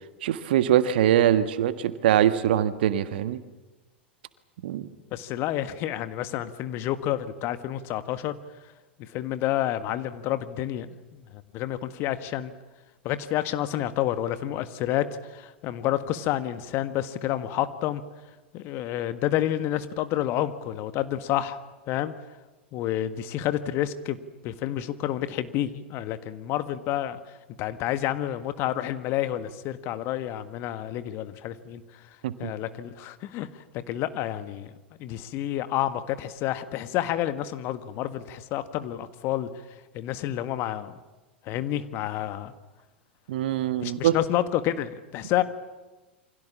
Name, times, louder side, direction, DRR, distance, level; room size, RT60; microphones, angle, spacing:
voice 1, 0.2-3.4 4.6-4.9 32.2-32.5 43.3-44.1, right 11 dB, 60° right, 11 dB, 1.6 m, -23 dB
voice 2, 5.1-8.4 9.0-12.5 13.0-18.0 18.5-21.6 21.9-22.1 22.7-24.2 24.4-27.2 27.6-32.0 32.4-33.5 33.9-34.7 35.0-39.5 39.9-40.9 41.4-42.5 43.8-45.4, left 12 dB, 40° left, 11 dB, 1.7 m, -29 dB
28.5 x 25.0 x 7.4 m, 1.2 s
figure-of-eight pair, 90°, 6 cm